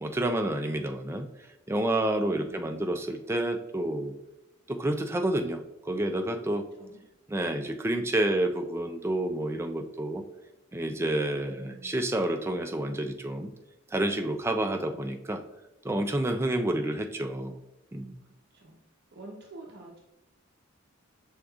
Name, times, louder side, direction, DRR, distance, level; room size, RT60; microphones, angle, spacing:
voice 1, 0.0-1.3 1.7-4.1 4.7-6.7 7.3-10.2 10.7-13.5 13.9-15.4 15.8-17.5 17.9-18.2, right 1 dB, 10° right, 6 dB, 0.3 m, -29 dB
voice 2, 2.3-2.8 6.8-7.0 11.5-12.0 14.8-15.0 18.2-18.8 19.1-20.0, right 2 dB, 50° right, 0 dB, 0.6 m, -48 dB
6.3 x 3.5 x 2.3 m, 0.92 s
head